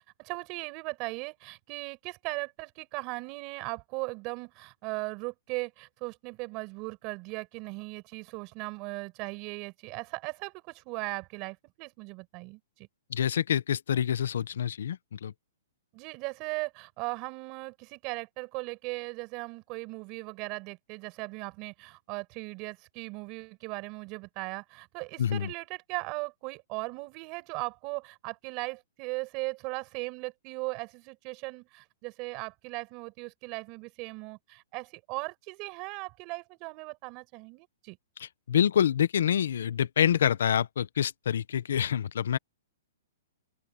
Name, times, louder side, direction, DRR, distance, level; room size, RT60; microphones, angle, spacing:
voice 1, 0.0-12.9 15.9-38.0, right 27 dB, 25° right, 6.1 m, -38 dB
voice 2, 13.1-15.3 25.2-25.5 38.2-42.4, left 9 dB, 70° left, 1.0 m, -27 dB
hypercardioid pair, 165°, 0 cm